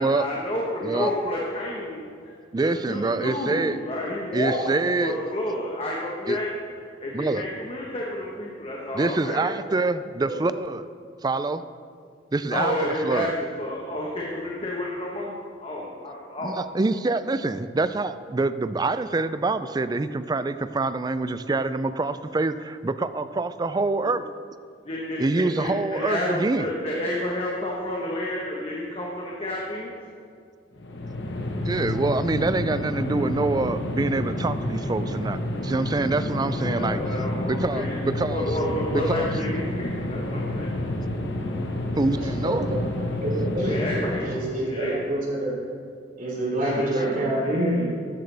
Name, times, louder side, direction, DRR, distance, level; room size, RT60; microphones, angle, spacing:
voice 1, 0.0-2.3 2.6-6.5 7.0-9.5 12.5-15.3 15.6-16.6 24.8-29.9 36.5-40.7 43.6-44.9 46.6-47.8, left 1 dB, 30° left, -3 dB, 1.2 m, -30 dB
voice 2, 2.5-3.8 4.3-5.2 6.3-6.4 7.1-7.4 8.9-10.9 11.2-11.6 12.3-12.7 13.0-13.4 16.4-24.2 25.2-26.7 31.7-37.0 37.5-38.5 38.9-39.3 42.0-42.7 46.8-46.9, right 3 dB, 20° right, 12 dB, 0.4 m, -25 dB
sound 1, 30.8-44.6, left 1 dB, 70° left, 1.2 m, -29 dB
voice 3, 42.1-42.7 43.2-43.8 44.2-45.5 46.2-47.8, right 1 dB, 50° right, -4 dB, 3.3 m, -27 dB
13.5 x 10.5 x 3.4 m, 2.2 s
head